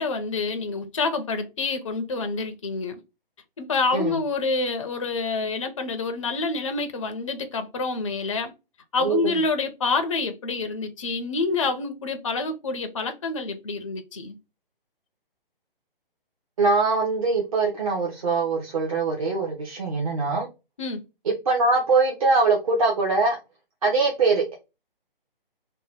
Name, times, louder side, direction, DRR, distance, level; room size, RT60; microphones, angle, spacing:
voice 1, 0.0-3.0 3.6-8.5 8.9-14.4 20.8-21.0, left 3 dB, 35° left, 0.4 m, -27 dB
voice 2, 16.6-20.5 21.5-23.4 23.8-24.5, right 3 dB, 35° right, 0.6 m, -22 dB
2.7 x 2.0 x 3.3 m
figure-of-eight pair, 140°, 29 cm